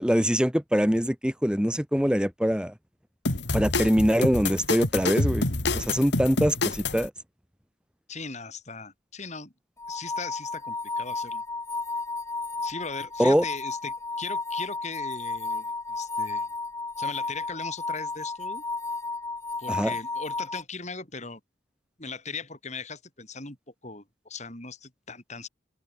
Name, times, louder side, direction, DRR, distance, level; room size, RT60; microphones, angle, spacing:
voice 1, 0.0-2.7 3.5-5.4 5.7-7.1 13.2-13.4 19.7-19.9, equal, 5° right, 2.0 m, -23 dB
sound 1, 3.3-7.1, left 2 dB, 65° left, 2.7 m, -27 dB
voice 2, 8.1-9.5 9.9-11.4 12.6-16.5 17.0-18.6 19.6-21.4 22.0-23.6 23.8-25.5, left 4 dB, 40° left, 5.5 m, -39 dB
sound 2, 9.8-20.6, left 3 dB, 15° left, 1.1 m, -33 dB
open air
head